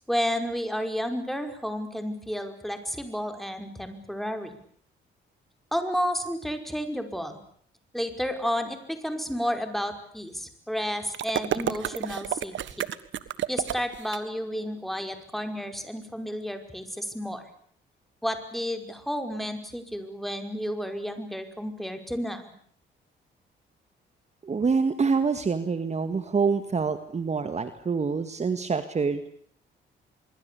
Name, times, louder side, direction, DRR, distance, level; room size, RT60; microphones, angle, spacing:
voice 1, 0.1-4.6 5.7-7.4 7.9-12.5 13.5-17.5 18.2-22.5, equal, ahead, 7 dB, 5.3 m, -31 dB
sound 1, 11.1-14.2, right 11 dB, 70° right, 1.6 m, -30 dB
voice 2, 24.4-29.3, right 5 dB, 35° right, 10 dB, 2.0 m, -26 dB
25.5 x 23.5 x 8.5 m, 0.62 s
cardioid pair, 90°, 20 cm